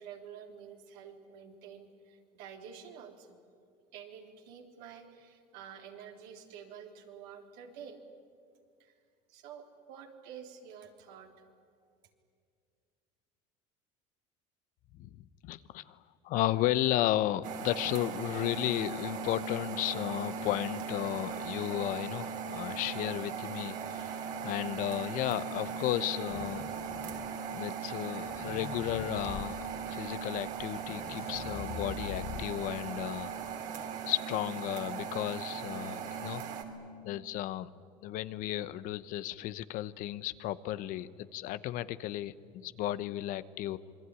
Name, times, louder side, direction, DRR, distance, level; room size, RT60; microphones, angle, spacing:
voice 1, 0.0-3.4 3.9-8.0 8.8-8.9 9.3-11.5, right 7 dB, 75° right, 3 dB, 3.6 m, -49 dB
voice 2, 15.0-16.0 16.2-26.7 27.5-33.5 34.1-36.4 37.0-37.7 38.0-43.8, left 14 dB, 65° left, 15 dB, 0.9 m, -34 dB
sound 1, 17.4-36.6, right 6 dB, 60° right, 3.3 m, -39 dB
sound 2, 26.3-27.5 28.1-29.5 30.3-30.4 30.6-32.7, left 8 dB, 45° left, 1.5 m, -44 dB
27.0 x 21.5 x 9.8 m, 2.3 s
supercardioid pair, 110°, 15 cm